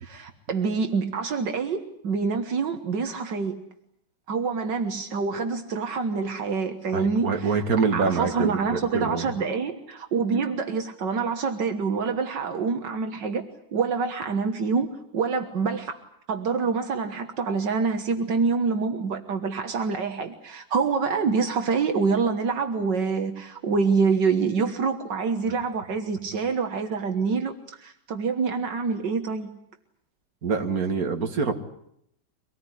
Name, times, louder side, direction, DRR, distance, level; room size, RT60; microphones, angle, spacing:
voice 1, 0.0-3.6 4.3-7.6 7.9-13.4 13.7-16.0 16.3-27.5 27.8-29.5, right 5 dB, 75° right, 7 dB, 2.1 m, -26 dB
voice 2, 6.9-9.3 30.4-31.5, right 5 dB, 55° right, 6 dB, 2.3 m, -25 dB
24.5 x 18.5 x 10.0 m, 0.74 s
omnidirectional pair, 1.9 m